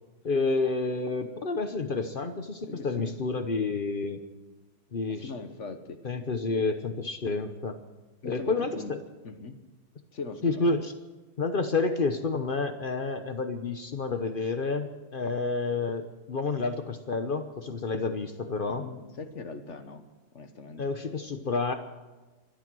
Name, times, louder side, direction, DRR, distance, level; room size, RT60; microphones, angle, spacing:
voice 1, 0.2-4.2 4.9-5.3 6.0-7.8 8.2-9.0 10.4-10.8 11.4-18.9 20.8-21.7, left 3 dB, 85° left, 8 dB, 0.4 m, -29 dB
voice 2, 2.7-3.2 5.1-6.0 8.2-8.9 9.2-9.6 10.1-10.7 18.7-20.0 20.3-20.9, left 4 dB, 40° left, 8 dB, 1.2 m, -40 dB
25.0 x 9.0 x 6.2 m, 1.2 s
omnidirectional pair, 2.4 m